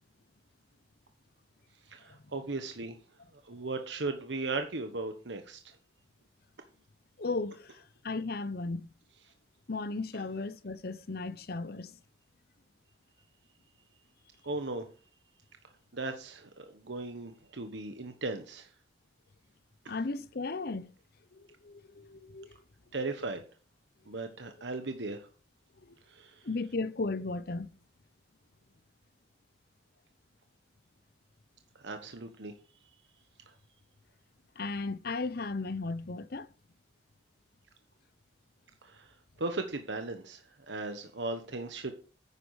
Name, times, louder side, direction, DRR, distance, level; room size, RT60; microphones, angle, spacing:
voice 1, 1.9-3.0 3.3-5.6 14.4-14.9 15.9-18.7 22.9-23.4 24.1-25.3 26.1-26.5 31.8-32.5 33.5-33.6 38.8-41.9, right 3 dB, 85° right, 1.3 m, -37 dB
voice 2, 7.2-8.9 9.7-12.0 19.9-20.9 21.3-22.6 25.8-26.0 26.4-27.7 34.6-36.5, left 3 dB, 60° left, 0.8 m, -36 dB
9.9 x 9.8 x 4.9 m
head